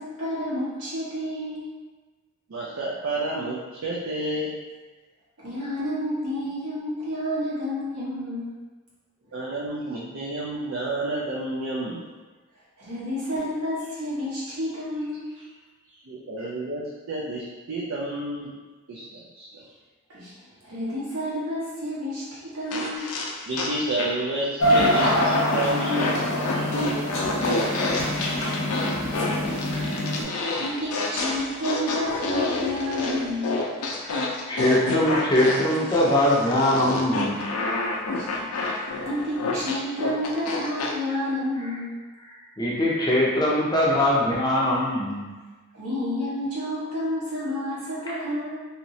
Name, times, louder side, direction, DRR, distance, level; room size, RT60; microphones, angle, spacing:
voice 1, 0.0-1.7 5.4-8.5 12.8-15.4 20.1-20.3 20.6-23.1 29.0-29.6 30.3-33.5 38.1-38.4 38.8-41.9 45.7-48.7, left 1 dB, 85° right, -9 dB, 1.4 m, -30 dB
voice 2, 2.5-4.6 9.3-12.0 16.1-18.5 18.9-19.6 23.4-26.2 26.5-26.9 30.2-30.3, right 1 dB, 60° right, -4 dB, 0.4 m, -30 dB
sound 1, 22.7-24.3 24.7-40.9, left 2 dB, 85° left, 0.5 m, -29 dB
sound 2, 24.6-30.2, equal, 65° left, 0.8 m, -25 dB
voice 3, 34.5-37.4 38.9-39.1 42.6-45.3, left 1 dB, 20° left, -5 dB, 0.5 m, -22 dB
2.9 x 2.8 x 2.7 m, 1.2 s
head